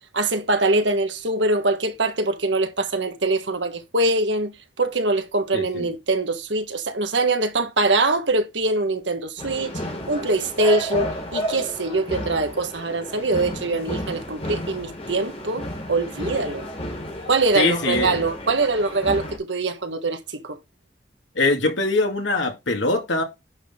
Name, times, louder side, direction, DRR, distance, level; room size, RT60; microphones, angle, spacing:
voice 1, 0.1-4.5 4.8-9.8 10.1-16.7 17.3-20.6, right 2 dB, 80° right, 1.5 m, -23 dB
voice 2, 5.5-5.9 17.5-18.2 21.4-23.2, left 2 dB, 90° left, 2.4 m, -22 dB
sound 1, 9.4-19.4, equal, 35° left, 3.6 m, -31 dB
10.5 x 6.0 x 3.7 m
head